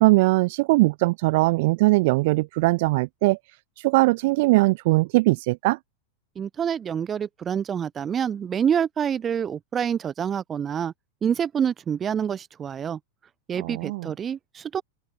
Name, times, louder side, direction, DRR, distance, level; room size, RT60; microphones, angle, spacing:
voice 1, 0.0-3.4 3.8-5.8 13.6-14.1, right 22 dB, 50° right, 0.7 m, -20 dB
voice 2, 6.4-10.9 11.2-13.0 13.5-14.8, right 8 dB, 25° right, 1.1 m, -27 dB
open air
figure-of-eight pair, 90°, 0 cm